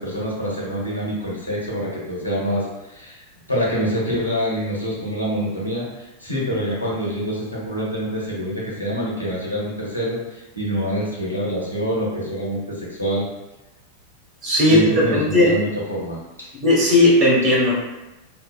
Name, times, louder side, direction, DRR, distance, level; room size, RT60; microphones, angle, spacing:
voice 1, 0.0-13.2 14.7-16.5, equal, 90° left, -5 dB, 0.7 m, -26 dB
voice 2, 14.4-15.1 15.3-15.5 16.6-17.8, left 1 dB, 35° right, -4 dB, 0.9 m, -16 dB
2.6 x 2.0 x 2.3 m, 1.0 s
figure-of-eight pair, 90°, 0 cm